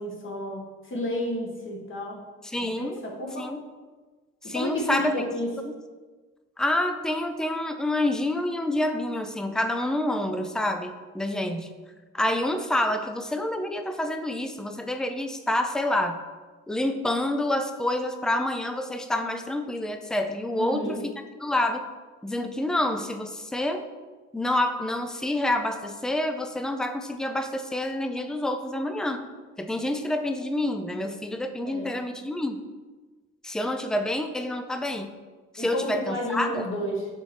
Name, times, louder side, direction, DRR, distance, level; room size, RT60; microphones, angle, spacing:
voice 1, 0.0-2.2 2.8-3.5 4.4-5.5 20.5-21.1 31.6-32.0 35.6-37.1, equal, 40° left, 0 dB, 1.6 m, -31 dB
voice 2, 2.4-3.0 3.4-3.6 4.4-5.1 6.6-11.7 12.1-16.2 16.7-21.0 21.4-21.8 22.2-23.8 24.3-29.2 29.6-32.6 33.4-35.1 35.5-36.7, left 1 dB, ahead, 7 dB, 0.4 m, -28 dB
6.9 x 3.4 x 4.4 m, 1.3 s
cardioid pair, 90°, 30 cm